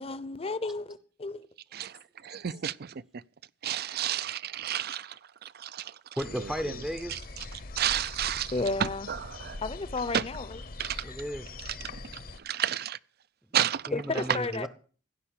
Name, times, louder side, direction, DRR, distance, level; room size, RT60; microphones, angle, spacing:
voice 1, 0.0-1.5 8.5-9.1 9.6-10.6 13.9-14.7, left 3 dB, 30° left, 0.8 m, -32 dB
voice 2, 1.7-3.0 3.6-5.9 7.1-7.2 7.8-8.5 8.8-9.6 10.1-10.2 10.8-11.0 12.4-13.0 13.5-13.9 14.3-14.4, right 10 dB, 55° right, 0.5 m, -31 dB
sound 1, 6.2-12.4, left 3 dB, 50° left, 1.0 m, -43 dB
voice 3, 6.2-7.2 11.0-11.6 13.5-14.7, equal, 5° right, 0.6 m, -35 dB
16.0 x 5.5 x 8.9 m
head